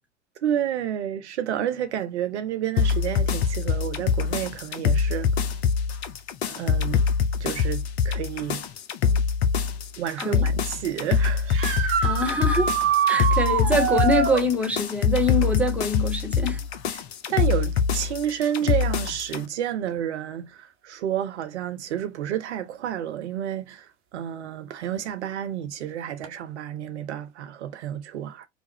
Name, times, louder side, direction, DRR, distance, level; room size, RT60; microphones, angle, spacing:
voice 1, 0.4-5.6 6.5-7.1 7.4-8.6 10.0-11.6 16.9-17.0 17.3-28.5, right 10 dB, 65° right, 0.7 m, -30 dB
sound 1, 2.8-19.4, left 6 dB, 60° left, 0.9 m, -24 dB
sound 2, 11.5-14.5 17.8-17.9 19.9-20.0 26.2-26.3, right 7 dB, 35° right, 1.4 m, -24 dB
voice 2, 12.0-12.7 13.1-16.6, left 1 dB, 5° right, 1.5 m, -24 dB
5.2 x 2.5 x 2.8 m
figure-of-eight pair, 85°, 37 cm